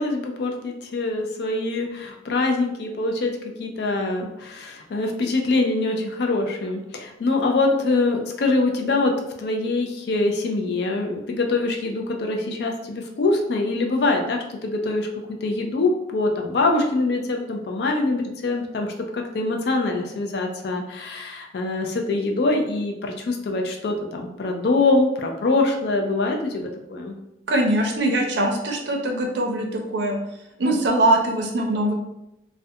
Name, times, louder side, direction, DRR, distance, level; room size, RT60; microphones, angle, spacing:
voice 1, 0.0-3.3 3.6-9.1 9.4-15.1 15.4-27.2, left 2 dB, 55° left, 2 dB, 0.4 m, -24 dB
voice 2, 27.5-30.2 30.6-31.9, right 1 dB, 65° right, 2 dB, 0.5 m, -22 dB
2.3 x 2.1 x 2.6 m, 0.90 s
head